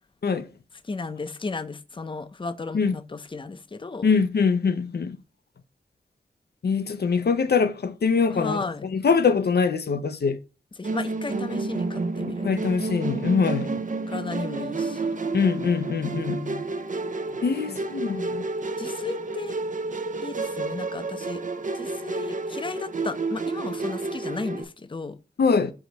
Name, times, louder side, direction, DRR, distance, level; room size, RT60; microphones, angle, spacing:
voice 1, 0.8-4.1 8.3-8.8 10.8-12.5 14.1-15.1 16.0-16.7 17.7-17.8 18.8-19.5 20.2-21.4 21.7-25.2, left 3 dB, 30° left, 0.5 m, -34 dB
voice 2, 4.0-5.2 6.6-8.7 8.9-10.4 12.4-13.9 15.3-16.4 17.4-18.4 25.4-25.7, left 5 dB, 80° left, 0.6 m, -23 dB
Musical instrument, 10.8-24.6, right 3 dB, 50° right, 0.6 m, -30 dB
5.2 x 4.8 x 3.9 m
wide cardioid pair, 80°, 17 cm